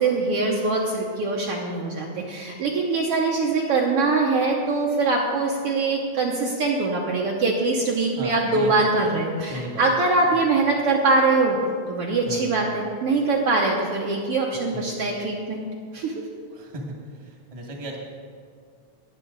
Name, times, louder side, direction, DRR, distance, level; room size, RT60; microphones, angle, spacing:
voice 1, 0.0-11.6 11.9-15.7 15.9-16.1, right 3 dB, 65° right, -1 dB, 1.6 m, -23 dB
voice 2, 8.2-8.9 9.5-9.9 10.3-10.4 12.2-12.5 14.7-14.9 16.5-16.8 17.1-18.0, right 1 dB, 15° right, -1 dB, 1.3 m, -35 dB
20.0 x 7.4 x 4.0 m, 2.1 s
omnidirectional pair, 3.4 m